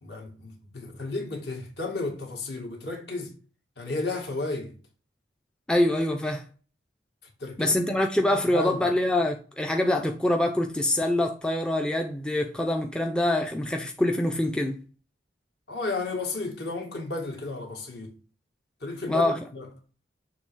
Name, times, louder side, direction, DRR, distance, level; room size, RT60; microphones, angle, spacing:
voice 1, 0.0-3.4 3.8-4.7 7.4-7.8 8.3-8.9 15.7-18.1 18.8-19.7, left 3 dB, 60° left, 1.9 m, -33 dB
voice 2, 5.7-6.4 7.6-14.8 19.1-19.4, left 1 dB, 5° left, 0.4 m, -25 dB
6.7 x 3.1 x 4.6 m
head